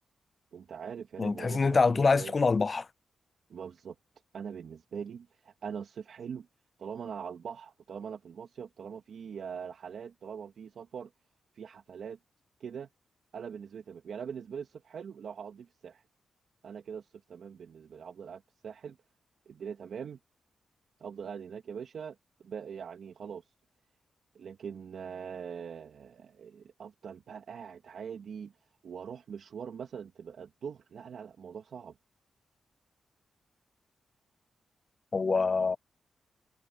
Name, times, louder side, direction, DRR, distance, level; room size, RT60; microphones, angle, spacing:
voice 1, 0.5-2.3 3.5-3.9 4.3-6.5 6.8-11.1 11.6-12.2 12.6-12.9 13.3-16.0 16.6-19.0 19.5-20.2 21.0-22.2 22.4-23.4 24.3-28.5 28.8-31.9, right 7 dB, 70° right, 2.2 m, -42 dB
voice 2, 1.2-2.9 35.1-35.8, left 4 dB, 35° left, 0.4 m, -25 dB
cardioid pair, 110°, 0 cm